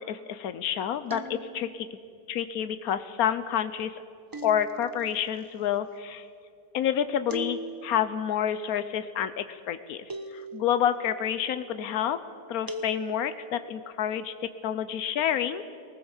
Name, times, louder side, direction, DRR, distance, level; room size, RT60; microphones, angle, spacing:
voice 1, 0.0-1.9 2.3-3.9 4.4-6.2 6.7-10.0 10.3-12.2 12.5-15.6, left 9 dB, 80° left, 12 dB, 1.3 m, -29 dB
sound 1, 1.1-1.9 4.3-5.1 7.3-8.1 10.1-10.9 12.7-13.5, right 2 dB, 20° right, 0.6 m, -39 dB
19.5 x 19.0 x 7.2 m, 2.3 s
omnidirectional pair, 1.5 m